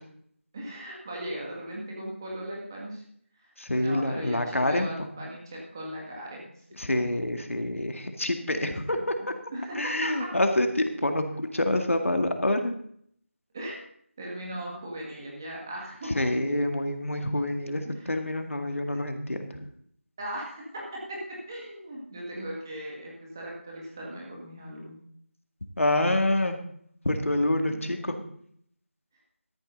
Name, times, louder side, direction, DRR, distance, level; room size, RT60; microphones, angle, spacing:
voice 1, 0.5-3.0 3.7-6.6 8.5-9.0 9.5-10.3 13.5-13.8 14.2-16.1 17.8-18.2 20.2-21.2 21.5-25.0 27.6-28.1, right 1 dB, 15° right, -3 dB, 2.0 m, -38 dB
voice 2, 3.6-4.9 6.8-9.0 9.8-12.7 16.2-19.7 25.8-26.6 27.0-28.2, left 1 dB, 75° left, 6 dB, 2.0 m, -27 dB
13.0 x 11.5 x 3.9 m, 0.65 s
figure-of-eight pair, 175°, 7 cm